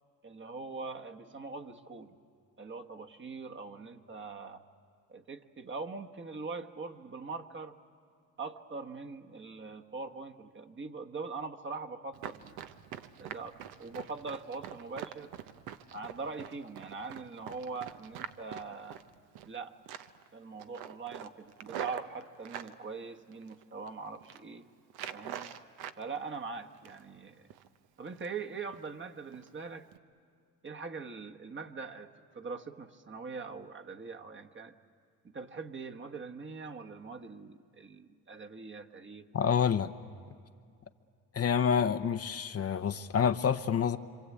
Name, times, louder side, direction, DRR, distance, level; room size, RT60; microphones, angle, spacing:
voice 1, 0.2-2.2 2.6-4.6 5.1-7.8 8.4-12.6 13.2-15.3 15.9-19.0 19.4-19.7 20.3-24.7 25.1-25.6 26.0-27.5 28.0-29.9 30.6-34.7 35.2-39.3 39.6-39.7, right 4 dB, 30° right, 4 dB, 1.3 m, -42 dB
Run, 12.1-19.6 19.9-20.3 20.6-22.7 23.3-23.9 24.1-24.4 24.9-26.0 26.3-27.2 27.5-27.7 28.1-28.4 28.7-28.9 29.3-29.5 29.9-30.0, right 10 dB, 75° right, 1.0 m, -44 dB
voice 2, 39.3-39.9 41.3-44.0, left 7 dB, 40° left, 9 dB, 0.8 m, -28 dB
27.0 x 25.5 x 8.5 m, 2.2 s
cardioid pair, 85°, 37 cm